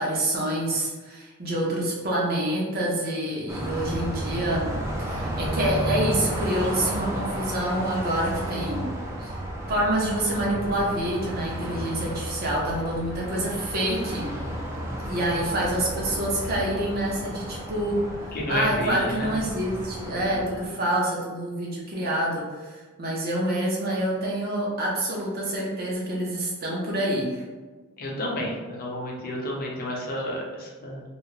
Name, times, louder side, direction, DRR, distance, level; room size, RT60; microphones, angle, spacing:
voice 1, 0.0-4.7 5.0-8.9 9.2-9.3 9.7-14.3 15.0-27.4, right 1 dB, 45° right, -3 dB, 0.7 m, -27 dB
Car passing by, 3.5-20.7, right 1 dB, 15° right, 0.3 m, -32 dB
voice 2, 18.3-19.3 20.1-20.6 28.0-31.0, left 1 dB, 45° left, -2 dB, 0.5 m, -31 dB
2.4 x 2.0 x 3.0 m, 1.3 s
head